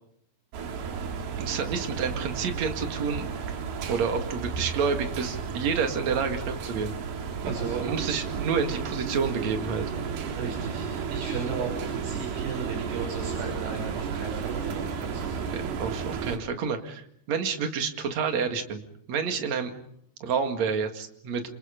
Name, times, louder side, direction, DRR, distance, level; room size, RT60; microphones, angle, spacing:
sound 1, 0.5-16.4, right 6 dB, 70° right, 3.9 m, -33 dB
voice 1, 1.4-3.3 3.9-6.9 7.4-7.5 7.8-9.8 15.5-17.0 17.3-18.8 19.1-19.7 20.2-21.4, right 6 dB, 50° right, 5 dB, 2.9 m, -29 dB
voice 2, 7.4-7.9 10.2-15.5, right 5 dB, 90° right, 0 dB, 8.4 m, -35 dB
27.5 x 27.5 x 5.2 m, 0.67 s
omnidirectional pair, 4.7 m